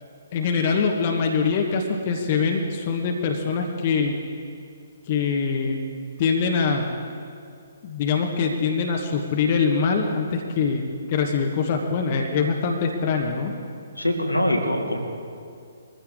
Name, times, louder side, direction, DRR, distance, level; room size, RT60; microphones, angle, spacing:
voice 1, 0.3-4.2 5.1-5.8 6.2-6.9 7.8-13.5, left 5 dB, 35° left, 2 dB, 1.3 m, -23 dB
voice 2, 14.0-15.0, left 1 dB, 90° left, 0 dB, 2.2 m, -23 dB
22.0 x 14.5 x 3.7 m, 2.3 s
figure-of-eight pair, 130°, 0 cm